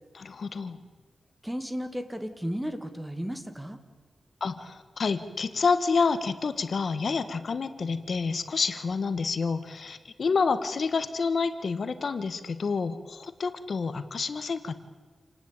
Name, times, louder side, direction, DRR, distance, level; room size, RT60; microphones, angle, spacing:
voice 1, 0.1-0.8 4.4-14.7, left 4 dB, 60° left, 11 dB, 1.4 m, -28 dB
voice 2, 1.4-3.8, equal, 5° right, 8 dB, 2.2 m, -34 dB
28.5 x 19.0 x 8.9 m, 1.5 s
wide cardioid pair, 125°, 0 cm